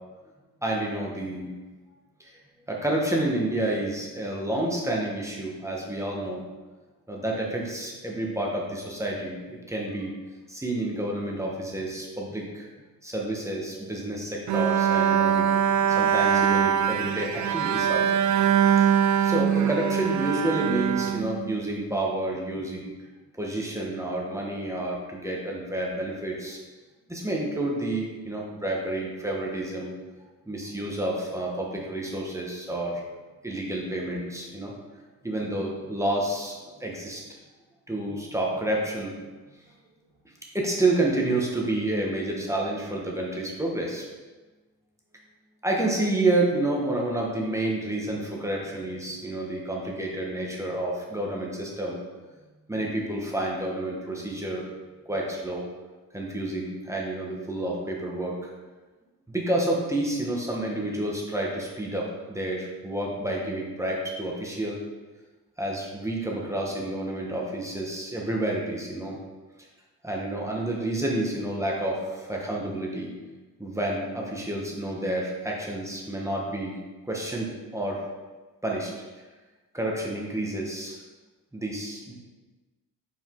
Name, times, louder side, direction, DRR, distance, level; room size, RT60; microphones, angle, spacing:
voice 1, 0.6-1.5 2.2-2.3 2.7-6.4 7.1-10.1 10.5-12.7 13.0-15.5 15.9-18.2 19.2-22.9 23.4-26.6 27.1-29.9 30.5-33.0 33.4-34.7 35.2-36.5 36.8-37.2 37.9-39.1 40.5-44.1 45.6-52.0 52.7-54.6 55.0-55.6 56.1-58.5 59.3-64.8 65.6-69.2 70.0-73.1 73.6-76.8 77.1-78.0 78.6-78.9 79.7-81.0 81.5-82.1, right 1 dB, 10° right, -2 dB, 1.2 m, -29 dB
Bowed string instrument, 14.5-21.9, right 8 dB, 50° right, 0.4 m, -23 dB
5.1 x 4.9 x 3.8 m, 1.3 s
cardioid pair, 100°, 37 cm